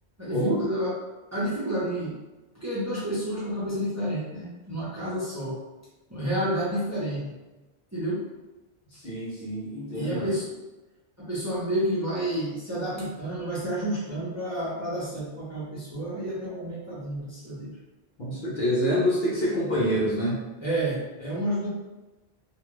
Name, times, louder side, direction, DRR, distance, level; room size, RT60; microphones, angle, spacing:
voice 1, 0.2-1.0 1.3-2.1 2.5-5.6 6.1-7.3 7.9-8.2 9.9-10.5 11.2-17.8 20.6-21.7, right 1 dB, 15° right, -9 dB, 0.7 m, -30 dB
voice 2, 8.9-10.3 18.2-20.4, equal, 55° left, -6 dB, 0.8 m, -26 dB
2.5 x 2.3 x 3.1 m, 1.1 s
omnidirectional pair, 1.1 m